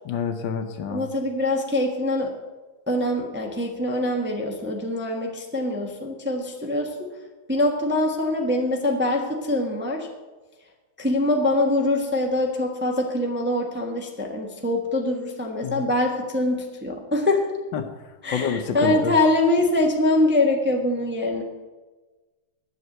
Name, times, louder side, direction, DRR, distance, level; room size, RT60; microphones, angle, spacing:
voice 1, 0.1-1.0 15.6-15.9 17.7-17.9 18.3-19.1, left 7 dB, 70° left, 7 dB, 1.5 m, -27 dB
voice 2, 0.9-2.3 2.9-7.1 7.5-10.1 11.0-17.5 18.2-21.4, left 1 dB, 10° right, 1 dB, 0.9 m, -24 dB
11.0 x 6.7 x 7.8 m, 1.2 s
omnidirectional pair, 2.2 m